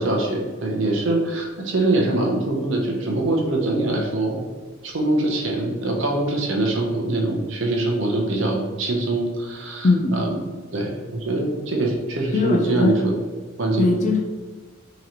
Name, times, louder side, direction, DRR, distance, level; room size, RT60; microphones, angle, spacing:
voice 1, 0.0-4.5 4.8-10.3 10.7-13.1 13.6-13.9, right 2 dB, 65° right, 0 dB, 0.7 m, -23 dB
voice 2, 9.8-10.2 12.3-13.0 13.8-14.3, left 3 dB, 35° left, 4 dB, 0.3 m, -20 dB
3.9 x 3.0 x 2.8 m, 1.4 s
head